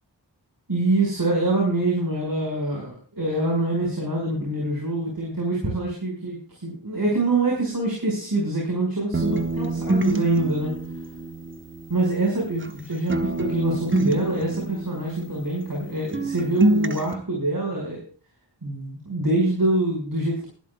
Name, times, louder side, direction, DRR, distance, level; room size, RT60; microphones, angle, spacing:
voice 1, 0.7-10.7 11.9-18.0 18.6-20.5, right 2 dB, 55° right, -1 dB, 5.3 m, -25 dB
sound 1, 9.1-12.8 13.1-15.9 16.1-17.1, right 2 dB, 30° right, 1.2 m, -26 dB
19.5 x 12.0 x 2.3 m, 0.38 s
cardioid pair, 40°, 42 cm